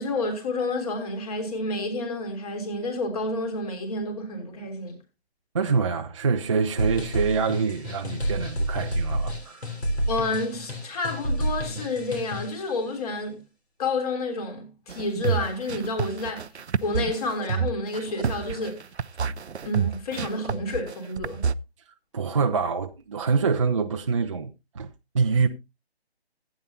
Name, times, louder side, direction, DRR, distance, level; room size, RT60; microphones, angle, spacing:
voice 1, 0.0-5.0 10.1-13.4 13.8-16.5 16.8-18.9 19.6-21.5, left 2 dB, 35° left, 3.2 m, -29 dB
voice 2, 5.5-9.6 22.1-24.9 25.1-25.5, right 5 dB, 30° right, 0.5 m, -25 dB
sound 1, 6.8-12.6, equal, 80° left, 3.6 m, -29 dB
sound 2, 14.9-21.5, right 6 dB, 90° right, 0.6 m, -28 dB
15.0 x 9.1 x 2.8 m
figure-of-eight pair, 145°, 32 cm